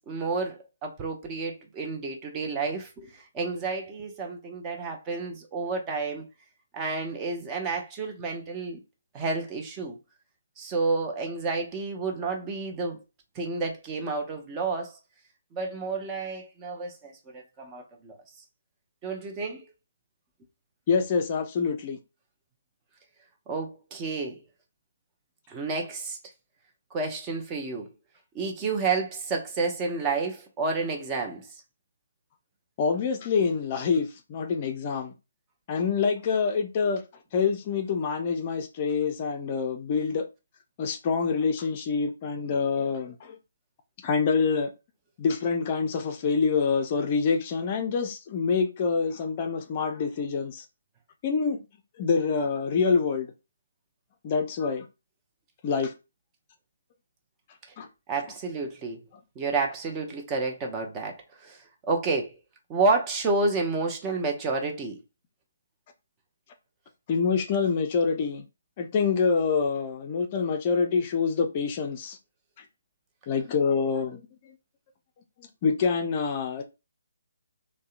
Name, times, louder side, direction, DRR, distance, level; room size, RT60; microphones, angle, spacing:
voice 1, 0.1-6.3 6.7-8.8 9.1-10.0 10.6-13.0 13.3-15.0 15.5-18.2 19.0-19.6 23.5-24.4 25.5-26.2 26.9-27.9 28.3-31.5 58.1-59.0 59.4-62.4 62.7-65.0, right 3 dB, 20° right, 0.6 m, -30 dB
voice 2, 20.9-22.0 32.8-35.1 35.7-37.0 37.3-40.3 40.8-43.4 44.0-44.7 45.2-50.6 51.2-51.6 52.0-53.3 54.2-54.9 55.6-55.9 57.8-57.9 67.1-68.4 68.8-72.2 72.6-72.7 73.3-74.5 75.6-76.6, left 5 dB, 35° left, 0.4 m, -26 dB
2.6 x 2.1 x 2.4 m
figure-of-eight pair, 140°, 0 cm